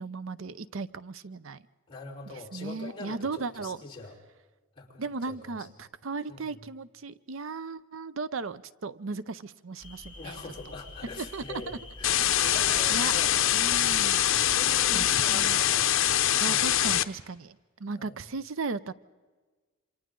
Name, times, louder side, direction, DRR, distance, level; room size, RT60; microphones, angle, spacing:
voice 1, 0.0-1.6 2.3-3.8 5.0-10.4 11.2-11.8 12.4-12.6 12.9-13.1 13.5-14.2 14.9-15.6 16.4-18.9, right 4 dB, 70° right, 15 dB, 0.6 m, -36 dB
voice 2, 1.9-4.2 4.8-5.7 6.3-6.6 10.0-13.4 13.8-15.9 16.4-17.0 18.0-18.2, left 3 dB, 25° left, -1 dB, 4.4 m, -44 dB
sound 1, 9.8-15.5, left 2 dB, 10° left, 7.3 m, -47 dB
sound 2, 12.0-17.0, left 11 dB, 70° left, 0.8 m, -24 dB
28.0 x 26.5 x 3.8 m, 1.3 s
head